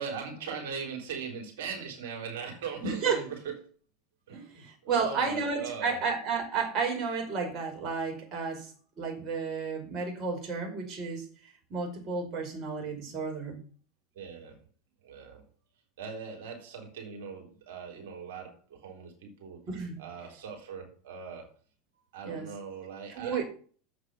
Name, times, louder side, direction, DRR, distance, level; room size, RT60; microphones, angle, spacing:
voice 1, 0.0-3.6 4.3-6.0 14.2-14.6 15.0-15.4 16.0-19.6 20.0-21.5 22.1-23.4, right 6 dB, 65° right, 3 dB, 3.8 m, -40 dB
voice 2, 2.8-3.2 4.3-8.7 9.0-11.2 11.7-13.6 19.7-20.0 22.2-22.5 23.2-23.4, right 5 dB, 40° right, 1 dB, 5.2 m, -32 dB
8.0 x 8.0 x 6.9 m, 0.42 s
figure-of-eight pair, 80°, 0 cm